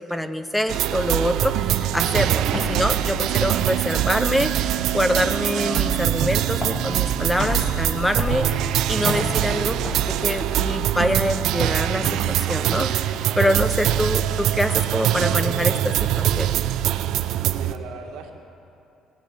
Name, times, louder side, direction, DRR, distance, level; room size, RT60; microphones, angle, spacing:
voice 1, 0.0-9.8 10.1-16.5, left 1 dB, 5° left, 10 dB, 0.4 m, -25 dB
sound 1, 0.7-17.7, right 12 dB, 65° right, 0.5 m, -23 dB
sound 2, 2.5-13.7, left 1 dB, 25° left, 1.9 m, -33 dB
voice 2, 17.5-18.3, right 5 dB, 85° right, 3 dB, 1.7 m, -39 dB
18.0 x 9.1 x 8.5 m, 2.7 s
cardioid pair, 170°, 0 cm